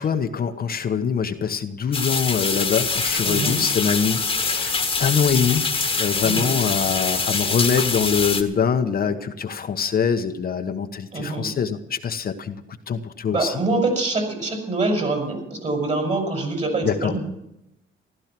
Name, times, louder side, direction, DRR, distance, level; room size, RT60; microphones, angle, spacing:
voice 1, 0.0-5.7 6.0-12.6 12.9-13.5 16.8-17.1, left 6 dB, 50° left, 6 dB, 1.1 m, -24 dB
sound 1, 1.9-8.4, left 4 dB, 25° left, 1.6 m, -24 dB
voice 2, 3.2-3.6 6.2-6.6 11.1-11.5 13.3-17.2, right 2 dB, 35° right, 3 dB, 5.7 m, -25 dB
15.5 x 12.5 x 6.1 m, 0.85 s
cardioid pair, 90°, 20 cm